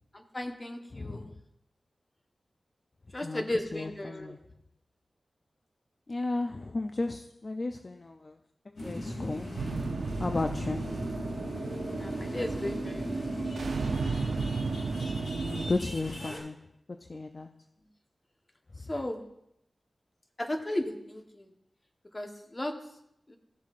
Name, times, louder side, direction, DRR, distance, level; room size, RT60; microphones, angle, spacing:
voice 1, 0.1-1.3 3.1-4.4 11.9-14.2 18.9-19.2 20.4-21.5 22.1-22.7 23.3-23.4, left 1 dB, 25° left, 1.0 m, -36 dB
voice 2, 0.9-1.3 3.2-4.4 6.1-8.3 8.7-9.6 10.2-11.0 13.4-13.6 15.3-17.6, left 2 dB, 40° left, 0.4 m, -34 dB
sound 1, 8.8-16.4, left 1 dB, 85° left, 2.7 m, -38 dB
sound 2, 9.6-15.7, right 4 dB, 85° right, 0.5 m, -34 dB
15.5 x 7.2 x 2.5 m
wide cardioid pair, 100°, 0 cm